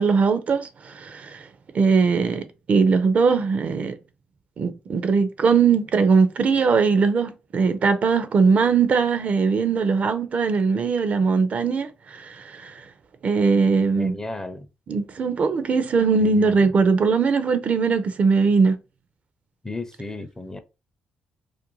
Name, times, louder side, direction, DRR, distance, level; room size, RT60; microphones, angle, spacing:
voice 1, 0.0-1.5 1.7-4.0 4.6-12.7 13.2-14.2 14.9-18.8, right 5 dB, 50° right, 0.4 m, -20 dB
voice 2, 14.0-14.7 16.2-16.7 19.6-20.6, left 2 dB, 20° left, 0.5 m, -34 dB
2.5 x 2.1 x 2.9 m
supercardioid pair, 55°, 3 cm